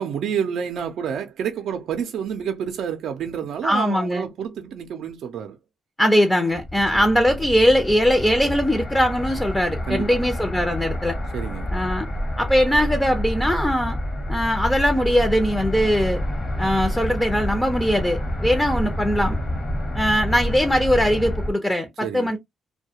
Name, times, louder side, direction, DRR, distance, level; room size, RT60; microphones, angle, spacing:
voice 1, 0.0-5.6 6.9-7.1 9.9-10.2 11.3-11.7 22.0-22.3, right 8 dB, 70° right, 0.5 m, -29 dB
voice 2, 3.6-4.2 6.0-11.2 11.7-12.1 12.4-14.0 14.3-16.2 16.6-19.4 19.9-22.4, equal, 10° left, 0.6 m, -21 dB
sound 1, 6.5-21.5, equal, 30° left, 1.0 m, -28 dB
2.3 x 2.2 x 2.7 m
cardioid pair, 90°, 0 cm